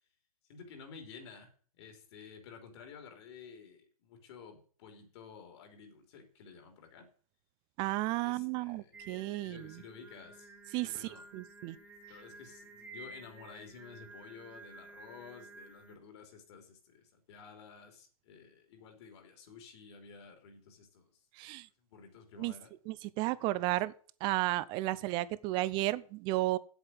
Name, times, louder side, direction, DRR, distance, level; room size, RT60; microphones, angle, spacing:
voice 1, 0.5-7.1 8.2-9.0 9.4-10.5 10.8-11.2 12.0-21.2 21.8-22.7, left 6 dB, 45° left, 5 dB, 3.3 m, -52 dB
voice 2, 7.8-9.8 10.7-11.8 21.4-21.7 22.4-22.5 22.9-23.9 24.2-26.6, right 18 dB, 25° right, 18 dB, 0.5 m, -33 dB
Singing, 8.9-16.0, right 3 dB, 10° right, 1.7 m, -53 dB
8.2 x 7.9 x 7.5 m, 0.43 s
hypercardioid pair, 135°, 19 cm